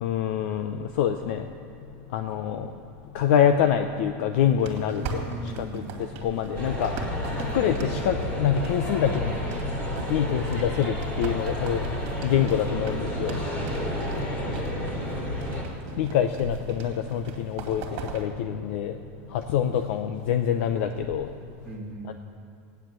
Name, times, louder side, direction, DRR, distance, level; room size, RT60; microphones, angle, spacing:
voice 1, 0.0-1.4 2.1-2.7 3.1-5.2 5.6-5.8 6.2-6.9 7.4-9.3 10.1-11.9 12.2-13.3 16.0-17.8 18.1-18.9 19.5-21.3 22.1-22.2, left 9 dB, 60° left, 7 dB, 0.6 m, -25 dB
sound 1, 4.6-18.3, right 3 dB, 45° right, 2.2 m, -39 dB
voice 2, 5.0-6.0 14.5-14.8 21.7-22.1, right 1 dB, ahead, -5 dB, 1.9 m, -38 dB
sound 2, 6.5-15.6, equal, 20° left, 2.5 m, -31 dB
15.5 x 9.8 x 7.5 m, 2.5 s
supercardioid pair, 175°, 7 cm